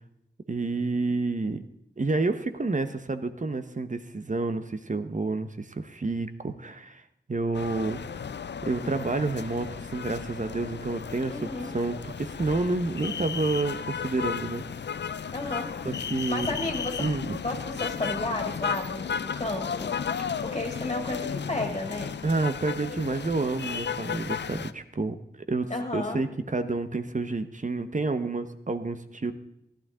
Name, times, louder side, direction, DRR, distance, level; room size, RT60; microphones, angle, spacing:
voice 1, 0.5-1.6 2.0-7.0 7.3-8.2 8.6-14.6 15.8-16.5 17.0-17.4 20.2-20.4 22.2-25.7 25.9-29.3, right 3 dB, 45° right, 9 dB, 1.0 m, -29 dB
sound 1, 7.5-24.7, left 7 dB, 75° left, 0.5 m, -34 dB
voice 2, 11.3-11.8 15.3-15.9 16.3-17.0 17.4-19.9 20.4-22.1 25.7-26.2, left 2 dB, 35° left, 2 dB, 2.3 m, -32 dB
15.0 x 11.5 x 3.7 m, 0.79 s
wide cardioid pair, 70°, 18 cm